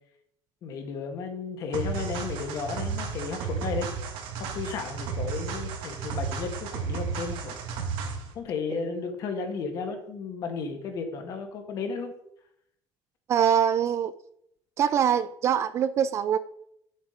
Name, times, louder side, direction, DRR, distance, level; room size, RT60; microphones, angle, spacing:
voice 1, 0.6-3.9 4.4-7.5 8.3-12.1, left 5 dB, 45° left, 1.6 m, -34 dB
sound 1, 1.7-8.3, right 5 dB, 85° right, 1.7 m, -33 dB
voice 2, 8.7-9.0 13.3-14.1 14.8-16.4, right 8 dB, 35° right, 0.4 m, -24 dB
9.2 x 7.3 x 5.1 m
cardioid pair, 180°, 8 cm